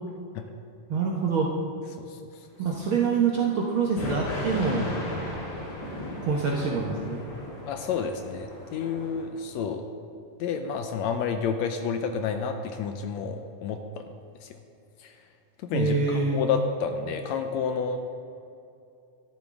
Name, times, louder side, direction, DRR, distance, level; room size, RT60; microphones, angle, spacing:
voice 1, 0.9-1.5 2.6-4.9 6.2-7.2 15.7-16.6, right 4 dB, 70° right, -2 dB, 1.3 m, -25 dB
sound 1, 4.0-9.2, left 1 dB, 60° left, 3.8 m, -36 dB
voice 2, 7.7-9.8 10.4-13.8 14.4-14.5 15.0-15.1 15.6-18.0, left 6 dB, 80° left, 6 dB, 1.7 m, -30 dB
13.0 x 11.5 x 3.6 m, 2.6 s
omnidirectional pair, 3.5 m